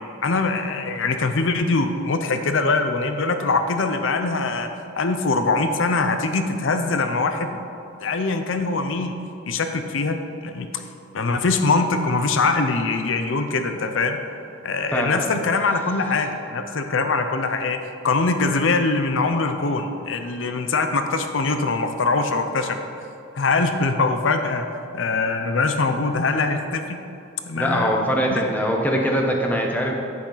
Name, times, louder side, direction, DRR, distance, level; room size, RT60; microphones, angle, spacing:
voice 1, 0.2-4.7 5.0-7.6 8.0-9.2 9.5-10.2 10.4-10.8 11.1-14.2 14.6-17.8 18.0-22.8 23.3-24.7 24.9-27.0 27.5-28.0 28.3-28.4, left 3 dB, 70° left, 7 dB, 0.7 m, -22 dB
voice 2, 14.9-15.2 27.5-29.9, equal, 10° left, 0 dB, 0.9 m, -22 dB
10.5 x 8.6 x 3.9 m, 2.6 s
head